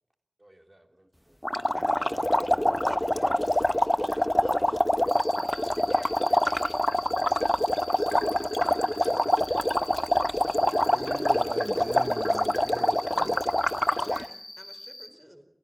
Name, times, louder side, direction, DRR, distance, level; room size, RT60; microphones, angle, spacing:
voice 1, 0.4-1.4 15.1-15.2, right 1 dB, 40° right, 3.3 m, -61 dB
sound 1, 1.4-14.3, left 1 dB, 20° left, 0.8 m, -25 dB
voice 2, 1.7-4.9 5.4-6.8 13.9-15.5, equal, 10° right, 4.4 m, -49 dB
Cricket, 5.1-15.1, left 1 dB, 60° left, 5.5 m, -44 dB
voice 3, 10.7-13.4, right 2 dB, 85° right, 1.1 m, -39 dB
28.5 x 16.0 x 7.4 m
wide cardioid pair, 45°, 0 cm